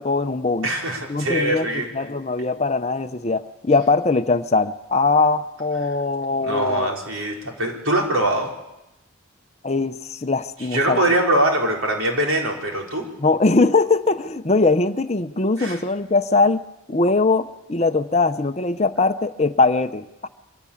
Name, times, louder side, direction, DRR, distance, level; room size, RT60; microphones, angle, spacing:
voice 1, 0.0-0.7 1.1-6.9 9.6-11.0 13.2-16.6 16.9-20.3, left 3 dB, 30° left, 10 dB, 0.7 m, -21 dB
voice 2, 0.6-1.9 6.4-8.5 10.7-13.1 15.6-15.8, right 1 dB, 75° right, 1 dB, 4.2 m, -22 dB
24.0 x 16.5 x 8.6 m, 0.96 s
head